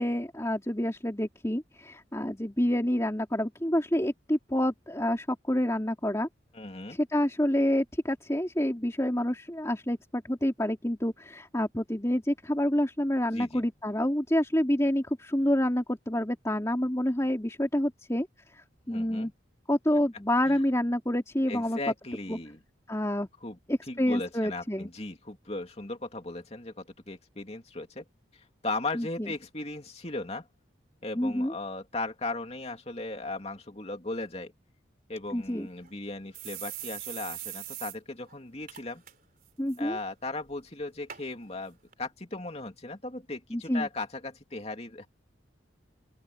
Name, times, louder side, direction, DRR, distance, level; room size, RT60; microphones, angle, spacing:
voice 1, 0.0-6.3 6.9-18.3 18.5-19.3 19.7-21.8 22.3-22.4 22.9-23.3 23.7-24.9 28.9-29.3 31.1-31.5 35.3-35.7 39.6-40.0 43.5-43.9, left 1 dB, 15° left, 2.9 m, -28 dB
voice 2, 6.5-7.0 13.3-13.6 18.9-19.3 20.5-20.6 21.5-22.6 23.4-23.6 23.9-28.0 28.3-30.5 31.0-34.5 35.1-39.0 39.8-45.1, left 2 dB, 35° left, 2.8 m, -37 dB
sound 1, 35.4-35.5 35.8-35.9 36.3-38.0 38.3-38.4 38.7-39.1 39.5-39.8 40.5-40.6 41.1-41.2 41.9-42.0, right 13 dB, 45° right, 3.9 m, -40 dB
open air
head